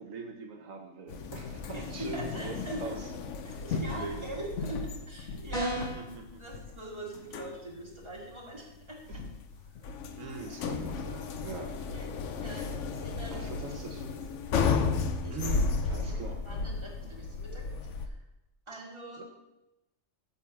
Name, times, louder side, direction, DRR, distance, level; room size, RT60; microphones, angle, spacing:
voice 1, 0.0-3.1 3.5-4.2 5.7-6.6 9.1-9.2 10.1-11.8 12.0-12.1 13.3-14.1 15.3-16.4 18.7-18.8 19.2-19.3, right 4 dB, 80° right, 4 dB, 1.3 m, -42 dB
sound 1, 1.1-18.1, left 4 dB, 70° left, 1.0 m, -34 dB
voice 2, 2.1-2.9 3.6-4.8 5.1-5.9 6.4-9.0 11.9-13.4 13.9-14.2 15.2-15.4 15.8-18.2 18.7-19.2, right 1 dB, 20° right, -3 dB, 2.1 m, -43 dB
sound 2, 5.5-6.1, right 1 dB, 25° left, 2.7 m, -32 dB
9.4 x 3.8 x 7.1 m, 0.94 s
omnidirectional pair, 1.4 m